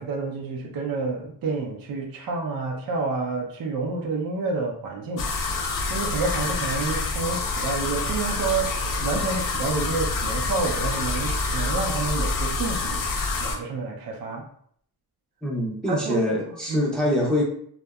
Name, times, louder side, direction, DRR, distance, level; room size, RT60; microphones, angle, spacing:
voice 1, 0.0-8.7 9.0-13.1 13.4-14.4 15.9-16.2 16.7-16.9, right 4 dB, 60° right, 0 dB, 0.6 m, -29 dB
sound 1, 5.2-13.6, left 3 dB, 55° left, 0.5 m, -27 dB
voice 2, 15.4-17.4, left 1 dB, ahead, -4 dB, 0.6 m, -24 dB
2.6 x 2.1 x 2.2 m, 0.62 s
cardioid pair, 105°, 40 cm